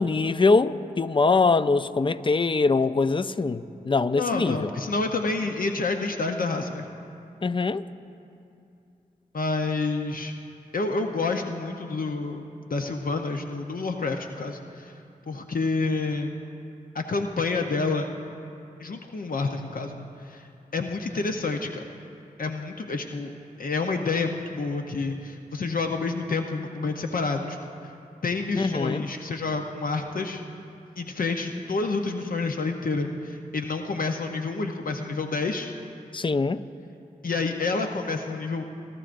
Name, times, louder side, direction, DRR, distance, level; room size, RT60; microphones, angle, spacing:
voice 1, 0.0-4.7 7.4-7.8 28.6-29.0 36.1-36.6, left 4 dB, 30° left, 0.4 m, -23 dB
voice 2, 4.2-6.9 9.3-10.3 10.7-12.5 12.7-14.9 15.3-16.3 16.9-18.1 18.8-20.5 20.7-21.8 22.4-23.3 23.6-27.6 27.8-27.9 28.2-30.4 31.0-35.7 37.2-38.6, left 3 dB, 60° left, 0.7 m, -28 dB
21.5 x 12.5 x 2.6 m
cardioid pair, 40°, 16 cm